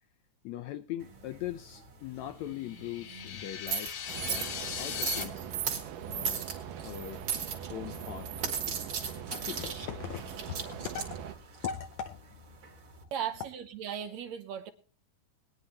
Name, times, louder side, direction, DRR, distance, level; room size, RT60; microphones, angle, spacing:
voice 1, 0.4-4.5 4.8-5.5 6.0-6.5 6.8-7.2 7.7-8.3 8.7-8.8 9.3-11.3 11.6-12.2, left 10 dB, 75° left, 9 dB, 1.7 m, -40 dB
sound 1, 1.0-13.0, right 6 dB, 45° right, 2.5 m, -38 dB
sound 2, 2.5-5.2, left 8 dB, 60° left, 2.1 m, -39 dB
sound 3, 4.1-11.4, right 8 dB, 85° right, 2.6 m, -42 dB
voice 2, 13.1-14.7, right 9 dB, 70° right, 9 dB, 1.9 m, -37 dB
21.5 x 9.7 x 2.8 m, 0.40 s
omnidirectional pair, 3.7 m